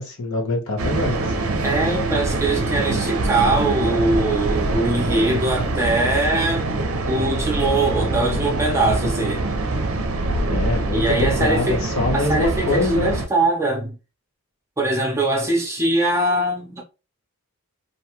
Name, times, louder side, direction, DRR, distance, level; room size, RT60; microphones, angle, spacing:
voice 1, 0.0-1.3 10.5-13.2, left 2 dB, 65° left, 0.9 m, -24 dB
sound 1, 0.8-13.3, right 2 dB, 70° right, 0.5 m, -24 dB
voice 2, 1.6-6.7 7.1-9.5 10.9-11.8 12.1-14.0 14.8-16.8, right 2 dB, 15° right, 0.6 m, -22 dB
2.6 x 2.3 x 2.8 m
head